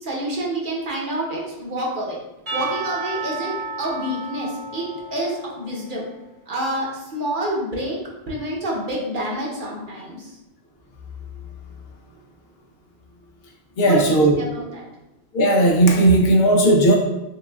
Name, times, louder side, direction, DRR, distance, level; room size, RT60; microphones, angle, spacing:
voice 1, 0.0-2.2 2.5-6.1 6.5-8.0 8.3-10.4 13.8-14.9, right 1 dB, 55° right, -3 dB, 1.0 m, -28 dB
Percussion / Church bell, 2.5-6.1, right 3 dB, 80° right, 1.9 m, -32 dB
voice 2, 13.8-14.4 15.3-17.0, right 1 dB, 70° left, 2 dB, 0.8 m, -15 dB
6.4 x 2.3 x 2.3 m, 0.99 s
omnidirectional pair, 1.1 m